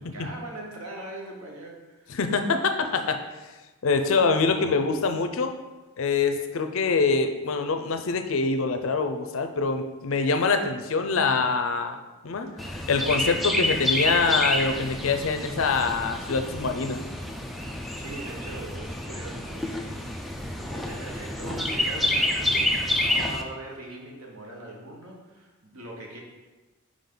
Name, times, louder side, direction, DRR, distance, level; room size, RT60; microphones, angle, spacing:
voice 1, 0.0-2.2 17.6-26.2, right 1 dB, 90° right, 0 dB, 1.2 m, -41 dB
voice 2, 2.1-3.2 3.8-5.5 6.0-12.0 12.2-17.0, left 4 dB, 70° left, 7 dB, 0.5 m, -25 dB
Chirp tweet, 12.6-23.4, left 1 dB, ahead, 0.3 m, -28 dB
5.4 x 4.9 x 3.8 m, 1.2 s
head